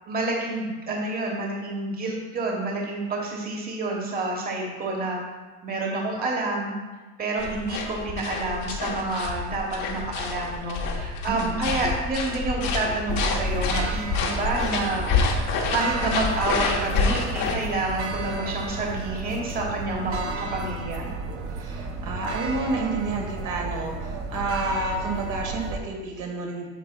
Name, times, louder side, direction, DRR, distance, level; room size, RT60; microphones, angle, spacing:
voice 1, 0.1-5.2 5.6-6.7 7.2-15.1 15.7-21.1, right 2 dB, 25° right, -1 dB, 1.1 m, -28 dB
sound 1, 7.4-17.5, left 4 dB, 65° left, 1.1 m, -28 dB
voice 2, 11.3-11.7 21.5-26.7, right 2 dB, 65° right, 0 dB, 1.4 m, -30 dB
sound 2, 13.1-25.8, right 3 dB, 45° right, 0.8 m, -33 dB
9.1 x 5.4 x 2.2 m, 1.3 s
cardioid pair, 125°, 34 cm